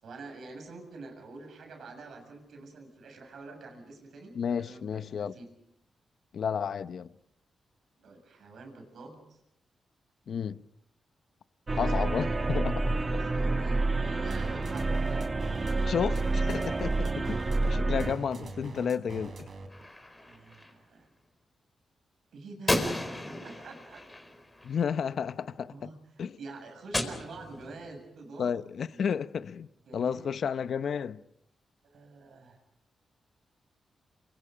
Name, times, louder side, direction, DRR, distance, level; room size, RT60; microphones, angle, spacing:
voice 1, 0.0-5.5 8.0-9.4 13.2-15.3 20.2-21.1 22.3-24.0 25.7-28.5 28.9-29.0 29.8-30.3 31.8-32.6, right 3 dB, 75° right, 7.1 m, -47 dB
voice 2, 4.3-5.3 6.3-7.1 10.3-10.6 11.7-13.2 15.8-19.5 24.6-25.9 26.2-26.4 28.4-31.2, left 7 dB, 70° left, 0.8 m, -32 dB
sound 1, 11.7-18.1, right 2 dB, 30° right, 1.7 m, -28 dB
sound 2, 14.3-19.8, right 4 dB, 55° right, 4.4 m, -42 dB
Gunshot gunfire, 19.7-20.7 22.7-25.1 26.9-27.9, left 1 dB, 15° left, 4.2 m, -34 dB
28.5 x 24.0 x 5.1 m
cardioid pair, 90°, 0 cm